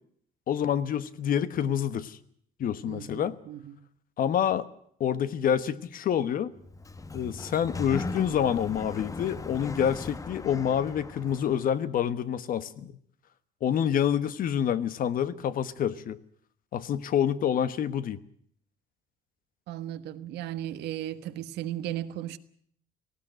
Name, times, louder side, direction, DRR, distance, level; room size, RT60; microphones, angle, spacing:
voice 1, 0.5-2.2 2.6-3.3 4.2-4.7 5.0-6.5 7.1-13.0 13.6-16.2 16.7-18.2, left 9 dB, 55° left, 1.3 m, -27 dB
voice 2, 2.8-3.8 19.7-22.4, right 12 dB, 80° right, 1.3 m, -36 dB
Sliding door, 6.6-11.7, left 3 dB, 20° left, 0.9 m, -38 dB
18.5 x 16.0 x 9.1 m
cardioid pair, 110°, 17 cm